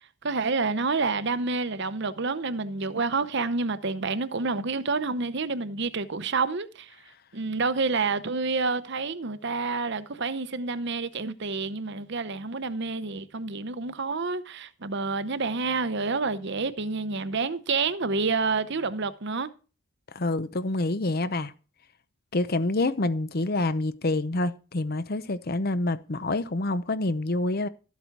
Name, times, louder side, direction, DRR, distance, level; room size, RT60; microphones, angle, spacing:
voice 1, 0.2-6.9 7.3-19.5, right 4 dB, 50° right, 0.8 m, -28 dB
voice 2, 20.1-21.5 22.3-27.7, left 2 dB, 45° left, 0.7 m, -27 dB
13.0 x 8.3 x 4.7 m
head